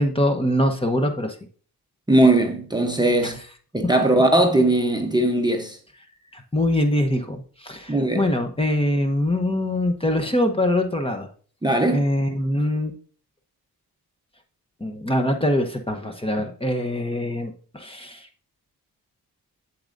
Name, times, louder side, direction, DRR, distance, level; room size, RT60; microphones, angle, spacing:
voice 1, 0.0-1.4 3.2-3.3 6.3-11.3 11.9-12.9 14.8-18.3, left 1 dB, 15° left, 0.9 m, -23 dB
voice 2, 2.1-3.4 3.7-5.8 7.9-8.2 11.6-12.0, right 1 dB, 10° right, 0.8 m, -19 dB
8.6 x 7.6 x 2.6 m
cardioid pair, 95°, 39 cm